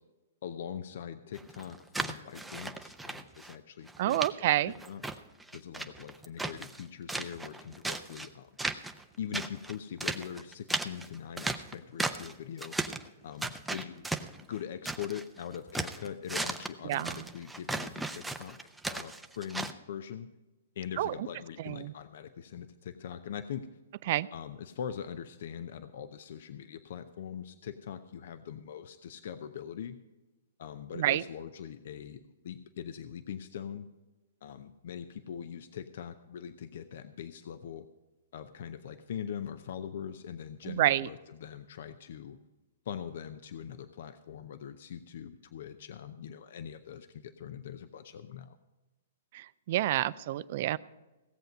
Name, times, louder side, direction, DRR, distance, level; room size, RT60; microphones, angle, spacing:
voice 1, 0.4-4.5 4.9-5.0 5.5-8.6 9.2-12.8 13.2-14.1 14.4-18.6 18.9-20.3 20.8-23.7 24.3-30.0 30.6-33.9 34.4-37.9 38.3-42.4 42.9-48.6, left 8 dB, 60° left, 11 dB, 0.6 m, -42 dB
sound 1, 1.3-3.5 3.9-4.3 4.7-6.8 7.1-8.3 8.6-9.0 9.3-12.3 12.6-13.1 13.4-15.2 15.5-19.7, right 2 dB, 5° right, 0.6 m, -36 dB
voice 2, 4.0-4.7 16.8-17.2 21.0-21.1 21.7-21.9 24.1-24.3 31.0-31.2 40.7-41.1 49.3-50.8, right 14 dB, 50° right, 18 dB, 0.4 m, -28 dB
17.0 x 7.8 x 5.3 m, 1.1 s
hypercardioid pair, 120°, 0 cm